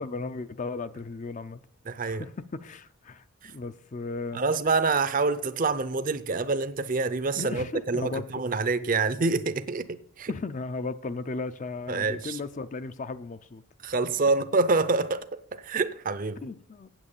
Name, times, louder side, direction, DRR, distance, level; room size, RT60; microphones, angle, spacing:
voice 1, 0.0-1.6 2.1-4.4 7.4-8.4 10.3-13.6 16.4-16.9, left 3 dB, 35° left, 0.4 m, -35 dB
voice 2, 1.9-2.2 3.4-3.5 4.3-10.3 11.9-12.4 13.8-15.2 15.5-16.4, right 3 dB, 40° right, 0.5 m, -26 dB
8.8 x 8.1 x 7.0 m
head